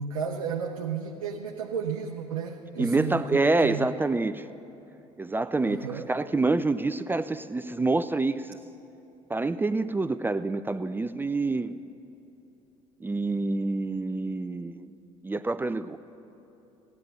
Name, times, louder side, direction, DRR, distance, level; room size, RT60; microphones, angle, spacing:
voice 1, 0.0-3.9 5.6-6.1, right 6 dB, 80° right, 2 dB, 0.7 m, -33 dB
voice 2, 2.8-4.5 5.2-8.6 9.3-11.8 13.0-14.9 15.2-16.0, right 3 dB, 10° right, 12 dB, 0.4 m, -27 dB
15.5 x 9.5 x 6.6 m, 3.0 s
figure-of-eight pair, 60°, 17 cm